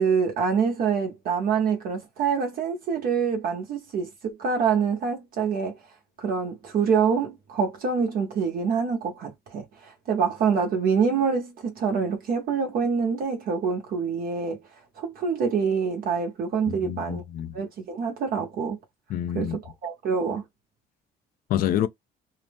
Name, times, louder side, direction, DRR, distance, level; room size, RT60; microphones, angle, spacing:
voice 1, 0.0-5.8 6.2-14.6 15.0-17.2 17.5-18.8 19.3-20.4, right 6 dB, 60° right, 0.9 m, -26 dB
voice 2, 16.7-17.5 19.1-19.6 21.5-21.9, left 11 dB, 60° left, 0.5 m, -27 dB
2.7 x 2.0 x 3.3 m
cardioid pair, 110°, 17 cm